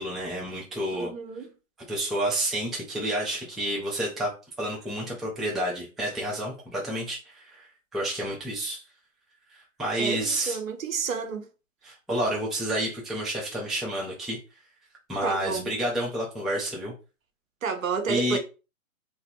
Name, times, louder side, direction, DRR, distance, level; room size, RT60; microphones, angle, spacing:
voice 1, 0.0-1.1 1.9-7.7 7.9-8.8 9.5-10.6 11.8-14.4 15.1-16.9 18.1-18.4, right 1 dB, ahead, 0.3 m, -30 dB
voice 2, 0.9-1.5 10.0-11.5 15.2-15.7 17.6-18.4, right 5 dB, 70° right, 0.6 m, -30 dB
2.2 x 2.1 x 3.2 m
hypercardioid pair, 180°, 42 cm